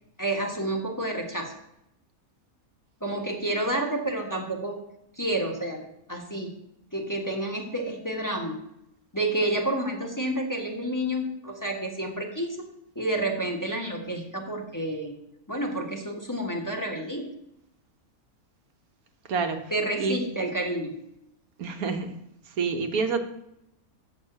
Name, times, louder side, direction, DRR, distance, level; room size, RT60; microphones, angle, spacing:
voice 1, 0.2-1.5 3.0-4.8 5.2-5.8 6.1-6.5 6.9-8.6 9.1-12.7 12.9-15.2 15.5-17.3 19.7-21.0, right 1 dB, 15° left, 0 dB, 1.3 m, -29 dB
voice 2, 19.3-19.7 20.0-20.2 21.6-22.1 22.6-23.2, right 4 dB, 80° right, 7 dB, 1.4 m, -27 dB
7.2 x 6.4 x 7.7 m, 0.80 s
omnidirectional pair, 1.5 m